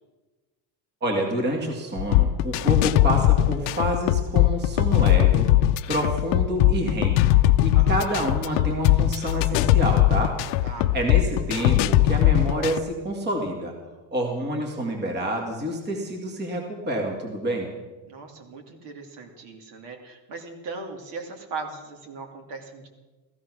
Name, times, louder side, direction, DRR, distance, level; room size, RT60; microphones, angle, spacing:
voice 1, 1.0-5.5 5.9-7.2 7.6-10.3 10.9-13.7 14.1-17.7, right 1 dB, 20° right, 1 dB, 2.1 m, -28 dB
sound 1, 2.0-12.8, left 14 dB, 65° left, 0.7 m, -20 dB
voice 2, 7.7-8.4 10.6-11.0 18.1-22.9, right 4 dB, 55° right, 3 dB, 2.7 m, -39 dB
15.5 x 15.0 x 6.2 m, 1.2 s
cardioid pair, 170°, 48 cm